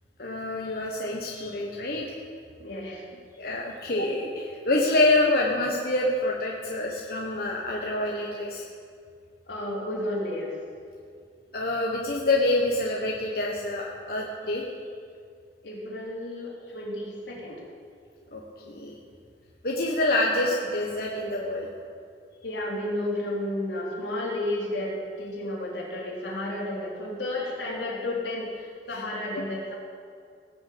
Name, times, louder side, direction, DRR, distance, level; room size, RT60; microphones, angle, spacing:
voice 1, 0.2-2.2 3.4-8.6 11.5-14.6 18.3-18.9 19.6-21.7 28.9-29.0, left 2 dB, 55° left, -2 dB, 1.4 m, -26 dB
voice 2, 2.6-3.0 9.5-10.5 15.6-17.6 22.4-29.8, left 1 dB, 90° left, -4 dB, 4.0 m, -32 dB
18.5 x 6.7 x 8.6 m, 2.2 s
head